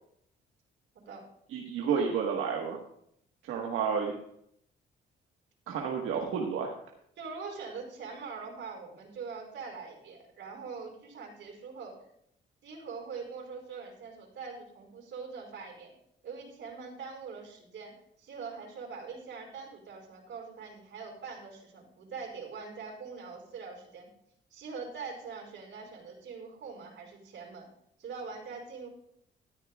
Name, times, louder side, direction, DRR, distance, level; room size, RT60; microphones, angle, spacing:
voice 1, 1.5-2.8 3.5-4.2 5.7-6.7, right 6 dB, 85° right, 0 dB, 1.5 m, -30 dB
voice 2, 7.2-11.9 12.6-15.9 16.2-17.9 18.2-24.1 24.5-27.7 28.0-28.9, right 5 dB, 70° right, 1 dB, 4.8 m, -43 dB
14.0 x 14.0 x 2.4 m, 0.71 s
cardioid pair, 90°, 20 cm